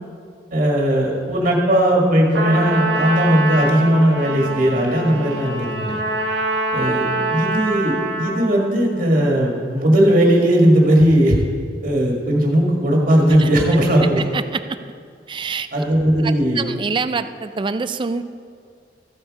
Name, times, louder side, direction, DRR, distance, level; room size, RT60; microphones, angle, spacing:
voice 1, 0.5-5.9 6.7-11.4 11.8-14.2 15.7-16.7, right 1 dB, 50° right, -1 dB, 1.7 m, -17 dB
Trumpet, 2.3-8.6, right 2 dB, 75° right, 1.2 m, -24 dB
voice 2, 14.3-14.8 15.3-15.7 16.2-18.2, right 4 dB, 25° right, 12 dB, 0.4 m, -25 dB
14.5 x 8.0 x 4.8 m, 2.2 s
head